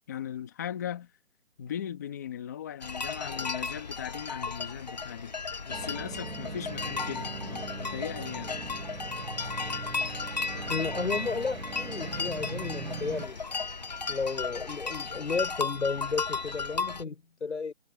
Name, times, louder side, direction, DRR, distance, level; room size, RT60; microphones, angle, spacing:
voice 1, 0.1-1.1 1.6-5.3 5.7-8.5, left 9 dB, 15° left, 1.8 m, -38 dB
sound 1, 2.8-17.0, left 4 dB, 35° left, 1.0 m, -35 dB
sound 2, 5.7-13.3, right 3 dB, 90° right, 4.1 m, -40 dB
Bowed string instrument, 6.1-15.6, right 13 dB, 5° right, 6.0 m, -60 dB
voice 2, 10.7-13.6 14.1-17.7, left 4 dB, 65° left, 5.9 m, -33 dB
hypercardioid pair, 175°, 39 cm